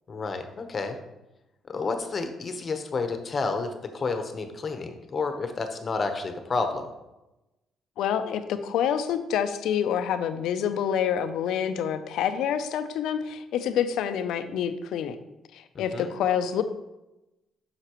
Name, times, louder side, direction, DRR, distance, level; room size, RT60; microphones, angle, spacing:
voice 1, 0.1-1.0 1.7-6.9 15.7-16.1, left 4 dB, 40° left, 7 dB, 0.9 m, -30 dB
voice 2, 8.0-15.2 15.5-16.6, left 8 dB, 85° left, 10 dB, 0.5 m, -27 dB
8.0 x 5.8 x 3.0 m, 0.98 s
cardioid pair, 90°, 0 cm